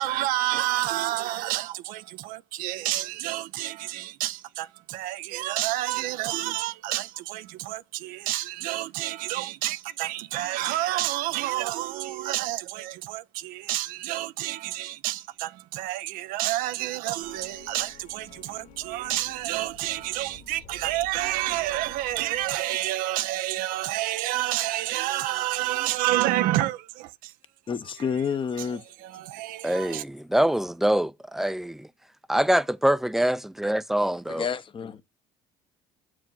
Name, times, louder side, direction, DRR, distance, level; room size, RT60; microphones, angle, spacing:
voice 1, 0.0-27.3 28.6-28.7 29.0-30.0, right 15 dB, 70° right, 0.6 m, -29 dB
sound 1, 17.2-22.6, left 5 dB, 55° left, 2.0 m, -50 dB
voice 2, 27.7-28.8 34.3-35.0, left 6 dB, 35° left, 0.9 m, -29 dB
voice 3, 29.6-31.9 32.3-34.5, right 1 dB, ahead, 0.6 m, -24 dB
7.0 x 4.9 x 3.8 m
supercardioid pair, 80°, 15 cm